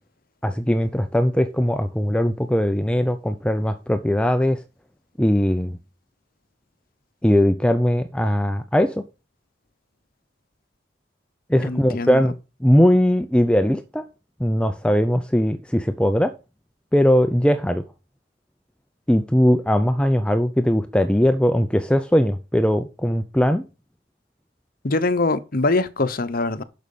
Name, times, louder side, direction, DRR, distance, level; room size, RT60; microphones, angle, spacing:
voice 1, 0.4-4.6 5.2-5.8 7.2-9.0 11.5-12.3 12.6-14.0 14.4-16.3 16.9-17.8 19.1-23.6, equal, 5° left, 0.5 m, -20 dB
voice 2, 11.6-12.2 24.8-26.6, left 2 dB, 50° left, 0.9 m, -23 dB
11.0 x 6.2 x 5.4 m
head